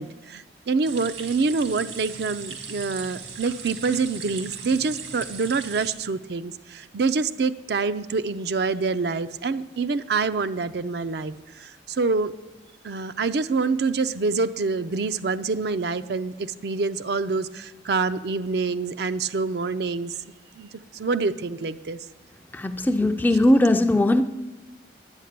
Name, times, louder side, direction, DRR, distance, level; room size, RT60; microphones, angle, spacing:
voice 1, 0.0-12.3 12.8-20.1 20.6-22.0, right 4 dB, 60° right, 11 dB, 0.4 m, -26 dB
sound 1, 0.8-5.9, right 6 dB, 85° right, 1.9 m, -38 dB
voice 2, 22.5-24.2, left 1 dB, 10° left, 9 dB, 0.4 m, -19 dB
10.5 x 8.5 x 6.7 m, 1.1 s
head